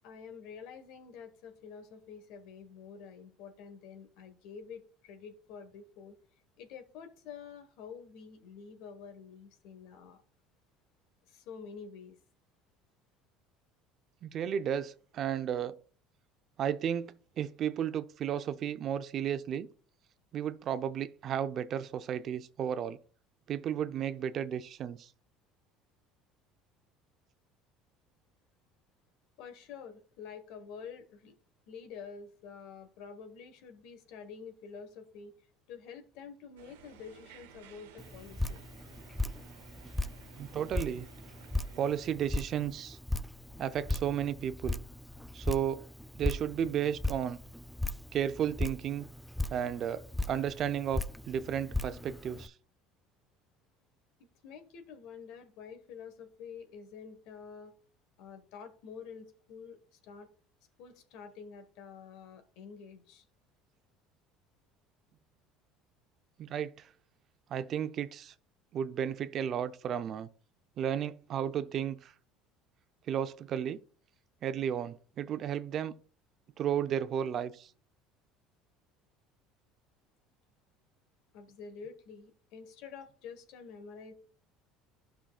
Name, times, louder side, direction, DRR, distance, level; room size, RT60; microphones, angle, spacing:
voice 1, 0.0-6.2 6.6-10.2 11.3-12.2 29.4-31.3 31.7-35.3 35.7-38.6 54.4-57.7 58.2-60.3 60.8-63.2 81.3-84.1, left 6 dB, 70° left, 1.3 m, -48 dB
voice 2, 14.2-15.8 16.6-19.7 20.3-23.0 23.5-25.1 40.4-41.1 41.8-43.0 43.6-44.8 45.3-45.8 46.2-47.4 48.1-49.0 49.5-52.5 66.4-66.9 67.5-68.3 68.7-70.3 70.8-72.1 73.1-73.8 74.4-75.9 76.6-77.7, right 9 dB, 50° right, 0.5 m, -33 dB
sound 1, 36.6-42.1, right 8 dB, 85° right, 0.7 m, -56 dB
Drip, 38.0-52.5, left 2 dB, 5° left, 0.4 m, -37 dB
12.0 x 5.7 x 2.3 m
supercardioid pair, 80°, 0 cm